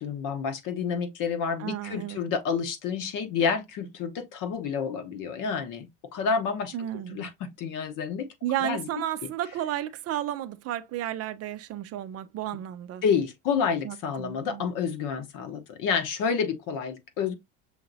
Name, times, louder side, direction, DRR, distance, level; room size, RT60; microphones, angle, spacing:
voice 1, 0.0-8.3 8.6-8.9 13.0-17.4, left 6 dB, 55° left, 1.1 m, -29 dB
voice 2, 1.6-2.2 6.7-7.3 8.4-13.0 13.8-14.6, right 12 dB, 40° right, 0.5 m, -33 dB
6.4 x 2.8 x 2.7 m
supercardioid pair, 100°, 38 cm